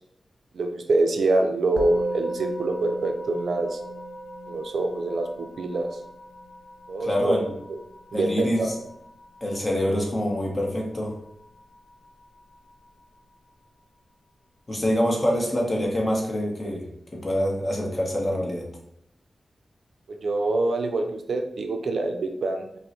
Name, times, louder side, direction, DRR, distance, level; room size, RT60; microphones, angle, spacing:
voice 1, 0.5-3.8 4.5-6.0 6.9-7.3 7.7-7.8 8.1-8.8 20.1-22.6, right 2 dB, 75° right, 5 dB, 0.4 m, -25 dB
Musical instrument, 1.8-11.3, right 1 dB, 85° left, 0.4 m, -37 dB
voice 2, 7.0-7.5 8.1-8.7 9.4-11.1 14.7-16.9 17.1-18.7, equal, 30° left, -1 dB, 1.0 m, -25 dB
5.1 x 2.1 x 3.0 m, 0.74 s
wide cardioid pair, 105°, 0 cm